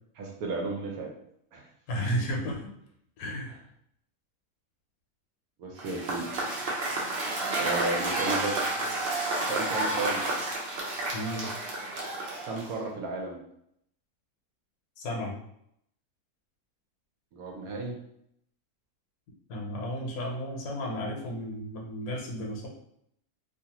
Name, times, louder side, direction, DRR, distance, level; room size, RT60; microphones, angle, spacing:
voice 1, 0.2-1.1 1.5-1.6 5.6-6.3 7.6-8.6 9.4-10.3 12.4-13.4 17.3-18.0, right 3 dB, 75° right, 0 dB, 1.0 m, -33 dB
voice 2, 1.9-2.7 3.2-3.6 11.1-11.5 15.0-15.4 19.5-22.7, equal, 70° left, 0 dB, 1.1 m, -33 dB
Cheering / Applause / Crowd, 5.8-12.9, right 2 dB, 55° right, 0.6 m, -30 dB
2.6 x 2.4 x 2.8 m, 0.72 s
omnidirectional pair, 1.6 m